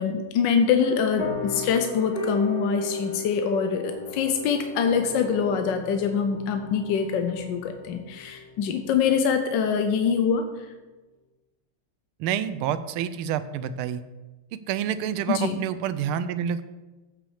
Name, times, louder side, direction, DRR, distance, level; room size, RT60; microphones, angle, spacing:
voice 1, 0.0-10.4 15.3-15.5, left 6 dB, 70° left, 6 dB, 1.3 m, -24 dB
sound 1, 0.8-8.9, left 2 dB, 30° left, 1.4 m, -35 dB
voice 2, 12.2-14.0 14.5-16.6, right 9 dB, 80° right, 13 dB, 1.5 m, -28 dB
8.5 x 6.1 x 6.4 m, 1.2 s
omnidirectional pair, 2.4 m